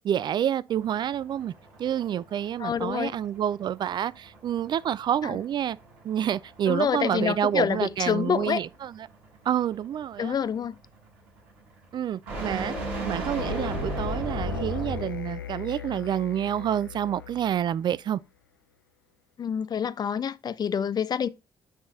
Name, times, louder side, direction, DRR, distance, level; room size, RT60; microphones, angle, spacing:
voice 1, 0.0-1.5 1.8-5.8 6.0-9.1 9.5-10.3 11.9-12.7 13.0-18.2, right 10 dB, 45° right, 0.4 m, -28 dB
sound 1, 0.7-15.3, right 2 dB, 70° right, 5.5 m, -38 dB
voice 2, 2.6-3.1 5.2-5.4 6.7-8.6 10.2-10.8 19.4-21.3, left 7 dB, 40° left, 0.5 m, -27 dB
sound 2, 13.3-17.9, left 9 dB, 85° left, 0.4 m, -37 dB
9.2 x 4.1 x 3.8 m
figure-of-eight pair, 45°, 11 cm